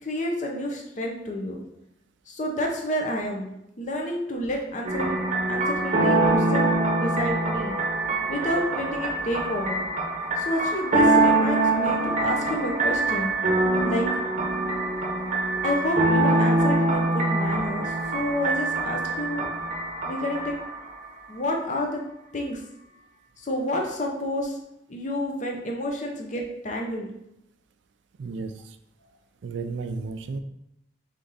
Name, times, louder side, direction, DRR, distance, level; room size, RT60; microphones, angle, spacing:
voice 1, 0.0-1.6 2.3-3.5 3.8-6.7 7.0-7.8 8.3-9.8 10.4-13.3 13.8-14.1 15.6-19.5 20.1-20.5 21.3-22.0 22.3-22.6 23.4-24.6 24.9-27.1, left 1 dB, 40° left, 1 dB, 0.6 m, -29 dB
sound 1, 4.8-20.9, right 2 dB, 40° right, 0.7 m, -24 dB
voice 2, 28.2-28.8 29.4-30.4, right 4 dB, 75° right, 9 dB, 0.4 m, -33 dB
3.7 x 3.5 x 3.9 m, 0.82 s
head